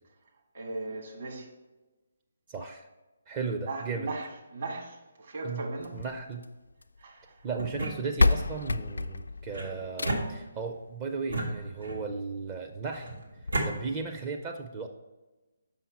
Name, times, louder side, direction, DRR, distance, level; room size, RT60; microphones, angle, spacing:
voice 1, 0.5-1.5 3.7-6.0 7.0-7.4, right 3 dB, 50° right, 0 dB, 1.8 m, -38 dB
voice 2, 2.5-2.9 3.3-4.1 5.4-5.6 5.9-6.4 7.4-13.1 13.6-14.9, right 4 dB, 25° right, 3 dB, 0.5 m, -35 dB
sound 1, 5.8-7.0 7.8-7.9 8.2-10.5 11.8-11.9 12.4-12.5 12.7-12.8 13.4-13.5, left 3 dB, 70° left, 0.3 m, -29 dB
sound 2, 7.5-8.5 9.5-10.8 11.3-12.2 12.9-13.7, right 1 dB, 80° right, 1.6 m, -34 dB
7.0 x 5.6 x 4.2 m, 1.1 s
figure-of-eight pair, 140°, 0 cm